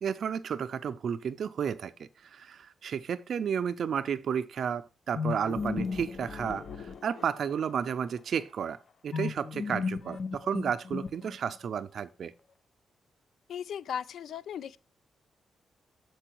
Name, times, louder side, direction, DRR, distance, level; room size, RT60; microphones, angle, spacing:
voice 1, 0.0-8.8 9.0-12.3, right 7 dB, 65° right, 0.4 m, -32 dB
sound 1, 5.1-7.7 9.1-11.6, left 5 dB, 55° left, 0.7 m, -35 dB
voice 2, 13.5-14.8, left 8 dB, 80° left, 0.4 m, -37 dB
7.6 x 4.6 x 4.5 m
cardioid pair, 100°, 0 cm